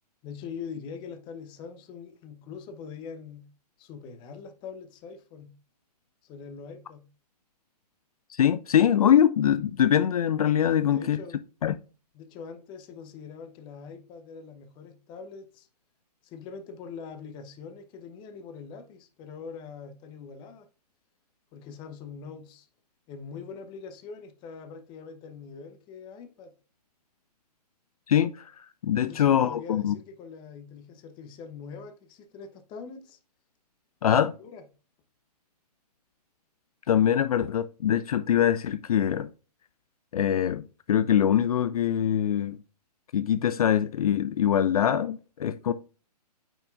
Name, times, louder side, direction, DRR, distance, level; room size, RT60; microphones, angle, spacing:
voice 1, 0.2-3.5 3.8-5.5 6.2-7.0 10.6-11.4 12.1-15.7 16.2-20.7 21.5-22.7 23.1-26.5 28.9-33.2 34.1-34.6, left 5 dB, 20° left, 0.8 m, -43 dB
voice 2, 8.3-11.2 11.6-11.7 28.1-29.9 34.0-34.3 36.9-39.3 40.1-42.6 43.1-45.7, left 9 dB, 60° left, 0.4 m, -23 dB
9.0 x 4.4 x 2.4 m
figure-of-eight pair, 125°, 21 cm